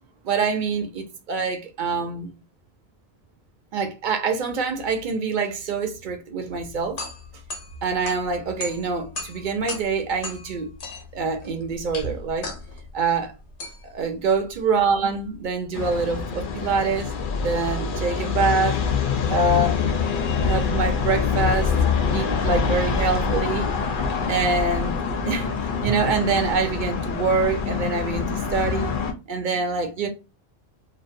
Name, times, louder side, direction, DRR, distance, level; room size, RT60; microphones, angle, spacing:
voice 1, 0.2-2.3 3.7-7.0 7.8-10.7 11.1-12.5 12.9-13.3 13.8-17.1 17.4-18.8 19.3-19.8 20.4-21.8 22.1-25.0 25.2-25.5 25.8-28.9 29.3-30.1, right 4 dB, 55° right, 0.6 m, -25 dB
sound 1, 6.5-15.6, left 3 dB, 90° left, 1.1 m, -38 dB
sound 2, 15.7-29.1, left 5 dB, 60° left, 0.6 m, -25 dB
2.5 x 2.1 x 2.5 m
omnidirectional pair, 1.1 m